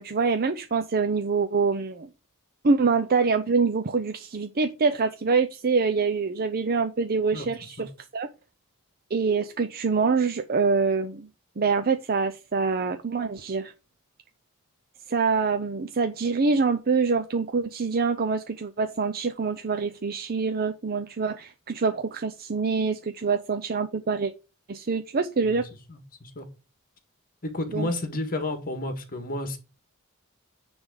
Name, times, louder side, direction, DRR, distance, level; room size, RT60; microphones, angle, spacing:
voice 1, 0.0-2.1 2.6-8.3 9.1-11.3 11.6-13.7 15.1-24.3 24.7-25.6 27.7-27.9, right 4 dB, 45° right, 0.6 m, -25 dB
voice 2, 25.9-26.5 27.4-29.6, left 2 dB, 40° left, 1.9 m, -31 dB
9.7 x 3.5 x 6.4 m
head